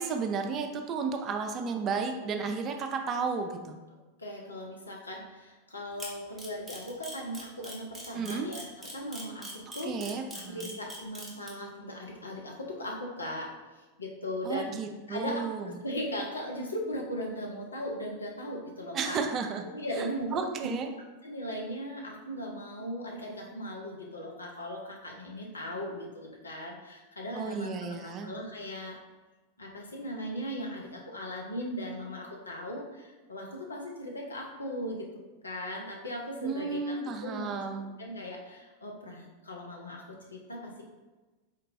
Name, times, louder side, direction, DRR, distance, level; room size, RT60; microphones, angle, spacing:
voice 1, 0.0-3.8 8.1-8.5 9.8-10.8 14.4-15.7 18.9-19.7 20.0-20.9 27.3-28.3 36.4-37.9, right 5 dB, 30° right, 4 dB, 0.3 m, -33 dB
voice 2, 4.2-10.1 10.5-14.8 15.1-19.2 19.7-20.7 21.2-29.0 29.6-35.1 35.4-37.6 38.0-40.9, equal, 75° left, 0 dB, 0.5 m, -38 dB
Camera, 6.0-11.5, right 1 dB, ahead, 0.8 m, -41 dB
3.9 x 2.2 x 2.6 m, 1.2 s
figure-of-eight pair, 90°, 0 cm